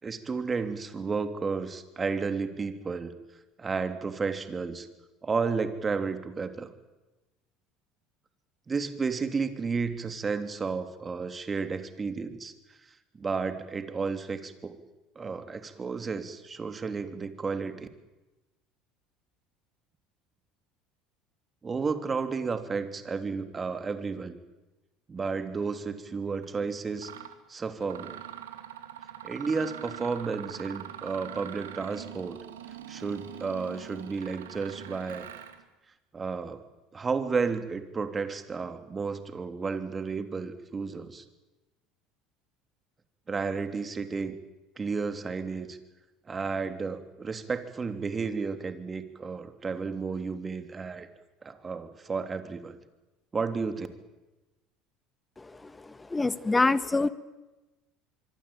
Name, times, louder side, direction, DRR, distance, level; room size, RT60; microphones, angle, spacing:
voice 1, 0.0-3.1 3.6-4.9 5.2-6.7 8.7-12.5 13.1-14.8 15.1-17.9 21.6-24.4 25.1-27.1 27.5-28.2 29.2-32.4 32.9-35.2 36.1-36.6 36.9-41.2 43.3-44.4 44.8-45.8 46.3-51.1 51.4-52.8 53.3-53.9, right 5 dB, 30° right, 8 dB, 3.3 m, -32 dB
Mechanisms, 26.3-26.5 27.0-27.4 27.8-35.6, right 11 dB, 85° right, 2.6 m, -43 dB
voice 2, 56.1-57.1, left 3 dB, 15° left, 13 dB, 1.7 m, -24 dB
24.5 x 24.5 x 9.0 m, 1.1 s
hypercardioid pair, 75°, 0 cm